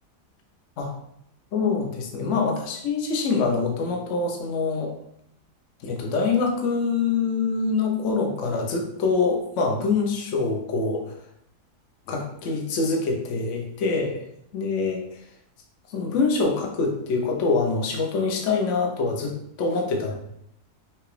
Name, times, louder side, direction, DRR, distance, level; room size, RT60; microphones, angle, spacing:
voice 1, 1.5-4.9 5.8-11.1 12.1-14.2 14.5-15.0 15.9-20.1, left 4 dB, 55° left, 1 dB, 1.0 m, -25 dB
5.8 x 2.4 x 3.2 m, 0.74 s
omnidirectional pair, 1.7 m